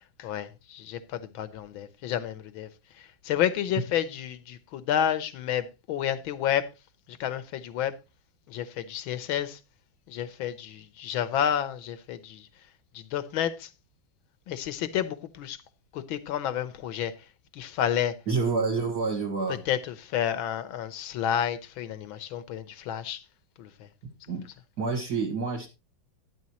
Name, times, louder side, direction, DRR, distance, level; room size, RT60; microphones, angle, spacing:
voice 1, 0.0-2.7 3.0-6.7 7.1-7.9 8.5-9.6 10.1-12.5 12.9-13.7 14.5-15.6 15.9-17.1 17.5-18.2 19.7-23.2 23.6-23.9, left 10 dB, 75° left, 1.6 m, -30 dB
voice 2, 18.3-19.6 24.3-24.4 24.8-25.7, right 4 dB, 50° right, 2.0 m, -28 dB
12.5 x 10.0 x 2.9 m
omnidirectional pair, 2.3 m